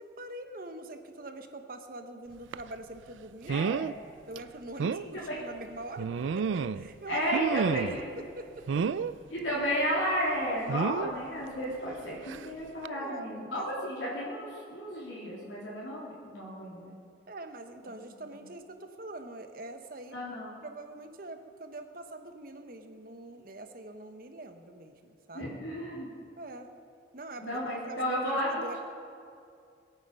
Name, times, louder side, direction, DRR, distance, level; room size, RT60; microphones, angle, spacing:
voice 1, 0.0-3.7 4.3-7.2 7.5-7.8 8.2-8.9 12.9-13.9 17.3-20.2 20.6-25.5 26.4-26.7 27.1-28.8, right 2 dB, 50° right, 7 dB, 1.1 m, -44 dB
sound 1, 2.5-2.7 3.5-3.9 4.3-4.4 4.8-5.0 6.0-6.9 7.3-8.0 8.7-9.1 10.7-11.1 12.3-12.5 12.8-12.9, right 6 dB, 85° right, 0.4 m, -30 dB
voice 2, 3.5-3.8 4.8-5.4 7.1-8.0 9.3-16.9 20.1-20.5 25.3-26.1 27.4-28.8, equal, 85° left, -6 dB, 3.4 m, -33 dB
21.0 x 9.1 x 5.4 m, 2.5 s
head